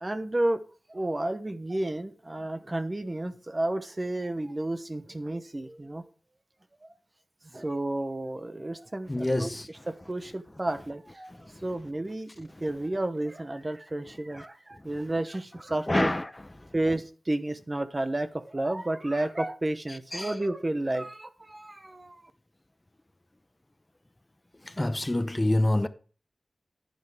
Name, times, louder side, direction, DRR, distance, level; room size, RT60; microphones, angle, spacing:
voice 1, 0.0-0.6 0.9-6.0 6.8-6.9 7.5-11.3 11.6-16.1 16.7-22.2, right 1 dB, 30° right, 1.0 m, -31 dB
voice 2, 9.1-9.7 15.9-16.2 20.1-20.3 24.8-25.9, left 1 dB, 20° left, 0.8 m, -26 dB
10.0 x 10.0 x 3.5 m
wide cardioid pair, 70°, 0 cm